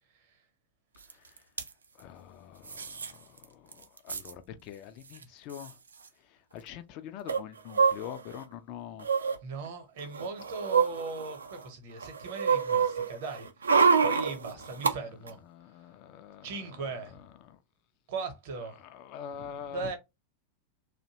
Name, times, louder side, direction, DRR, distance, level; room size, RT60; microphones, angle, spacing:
sound 1, 1.1-1.2 1.4-1.7 2.7-3.1 3.4-3.5 3.7-4.3 5.2-5.3 5.5-5.7 7.3-8.4 9.0-9.4 10.0-11.6 12.0-14.9 15.3-15.4, right 5 dB, 75° right, 0.4 m, -27 dB
voice 1, 2.0-5.8 6.5-9.1 15.5-17.6 18.8-19.9, left 9 dB, 40° left, 0.3 m, -45 dB
voice 2, 9.4-13.7 14.0-15.4 16.4-17.2 18.1-18.8 19.7-20.0, right 4 dB, 50° right, 0.8 m, -38 dB
2.6 x 2.1 x 2.8 m
figure-of-eight pair, 90°, 0 cm